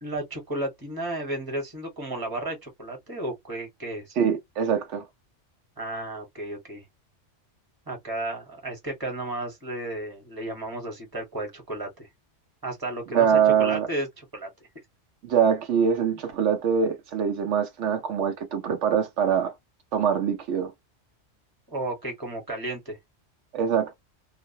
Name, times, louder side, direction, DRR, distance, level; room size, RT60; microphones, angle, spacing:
voice 1, 0.0-4.2 5.8-6.8 7.9-12.1 12.6-14.5 21.7-23.0, right 1 dB, 20° right, 1.1 m, -33 dB
voice 2, 4.2-5.0 13.1-13.9 15.2-19.5 19.9-20.7 23.5-23.9, right 7 dB, 80° right, 0.9 m, -23 dB
2.4 x 2.1 x 2.7 m
omnidirectional pair, 1.2 m